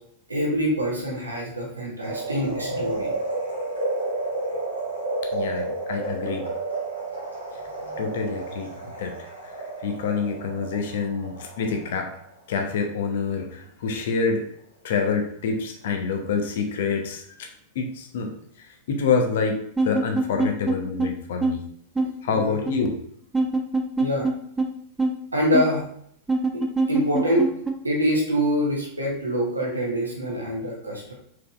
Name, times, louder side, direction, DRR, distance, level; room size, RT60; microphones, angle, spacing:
voice 1, 0.3-3.1 7.8-8.0 22.3-22.6 24.0-24.3 25.3-25.8 26.5-27.5 27.8-31.1, equal, 80° right, -2 dB, 1.2 m, -25 dB
sound 1, 2.0-12.3 12.7-12.8, right 2 dB, 90° left, 1.6 m, -31 dB
voice 2, 5.3-6.4 8.0-8.7 9.0-9.1 9.8-12.1 12.5-14.4 14.8-17.2 17.7-18.3 18.9-19.6 19.9-21.6 22.2-23.0, left 5 dB, 55° left, 3 dB, 0.8 m, -26 dB
sound 2, 19.8-20.7 21.0-21.1 21.4-21.5 22.0-22.1 22.7-22.9 23.3-24.3 24.6-24.7 25.0-25.1 25.5-25.6 26.3-27.7, right 3 dB, 10° right, 0.5 m, -22 dB
4.6 x 4.0 x 2.4 m, 0.67 s
figure-of-eight pair, 90°, 0 cm